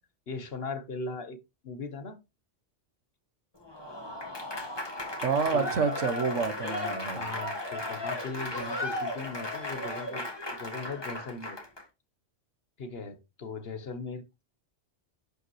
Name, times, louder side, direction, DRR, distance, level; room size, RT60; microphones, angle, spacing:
voice 1, 0.3-1.4 1.6-2.2 5.5-5.7 7.1-11.6 12.8-14.4, left 3 dB, 55° left, 1.3 m, -39 dB
Applause / Crowd, 3.6-11.8, left 1 dB, 20° left, 1.5 m, -35 dB
voice 2, 5.2-7.3, right 5 dB, 85° right, 1.5 m, -28 dB
11.0 x 5.2 x 3.1 m
omnidirectional pair, 1.2 m